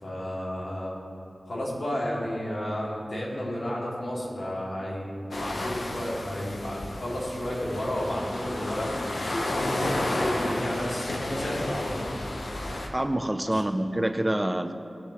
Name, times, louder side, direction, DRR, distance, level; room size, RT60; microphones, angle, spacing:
voice 1, 0.0-1.0 1.5-12.1 13.5-13.6, equal, 70° left, -6 dB, 2.9 m, -32 dB
sound 1, 5.3-12.9, left 1 dB, 90° left, 1.1 m, -32 dB
voice 2, 12.9-14.7, right 1 dB, 20° right, 8 dB, 0.7 m, -26 dB
20.0 x 7.0 x 3.3 m, 2.7 s
wide cardioid pair, 60°, 0 cm